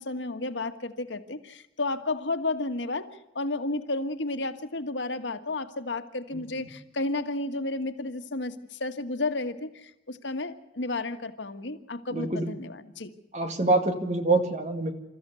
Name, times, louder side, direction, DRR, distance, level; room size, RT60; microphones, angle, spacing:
voice 1, 0.0-13.1, left 2 dB, 90° left, 8 dB, 1.5 m, -32 dB
voice 2, 12.1-12.5 13.3-14.9, right 2 dB, 40° right, 6 dB, 2.1 m, -25 dB
28.0 x 14.0 x 7.0 m, 0.93 s
head